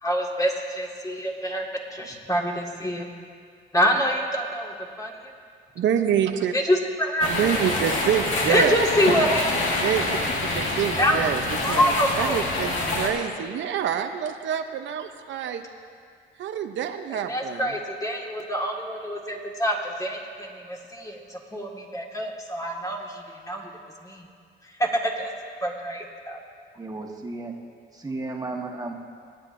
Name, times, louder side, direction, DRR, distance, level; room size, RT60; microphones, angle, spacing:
voice 1, 0.0-3.1 3.7-5.2 6.5-7.5 8.5-9.8 11.0-11.2 11.6-12.4 17.1-23.7 24.0-24.3 24.8-25.3 25.6-26.4, equal, 15° left, -1 dB, 1.8 m, -26 dB
voice 2, 5.8-6.5 7.3-8.8 9.8-10.2 10.5-11.4 11.7-15.6 16.4-17.7, right 9 dB, 70° right, 6 dB, 0.7 m, -26 dB
sound 1, 7.2-13.1, left 2 dB, 80° left, 1.8 m, -26 dB
voice 3, 26.8-27.5 27.9-28.9, right 2 dB, 20° right, 1 dB, 1.4 m, -33 dB
25.5 x 9.2 x 2.6 m, 2.2 s
cardioid pair, 90°, 20 cm